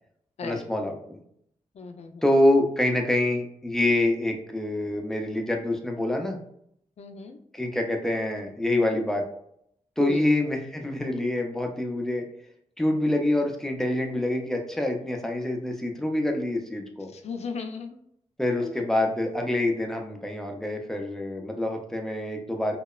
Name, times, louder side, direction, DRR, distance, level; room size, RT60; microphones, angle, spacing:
voice 1, 0.4-1.2 2.2-6.4 7.5-9.2 10.0-12.2 12.8-17.1 18.4-22.8, left 1 dB, 5° left, 2 dB, 0.5 m, -26 dB
voice 2, 1.8-2.2 7.0-7.4 10.0-10.2 17.1-18.0 18.6-18.7, left 4 dB, 60° left, 5 dB, 0.4 m, -35 dB
2.9 x 2.0 x 2.3 m, 0.71 s
cardioid pair, 70°, 13 cm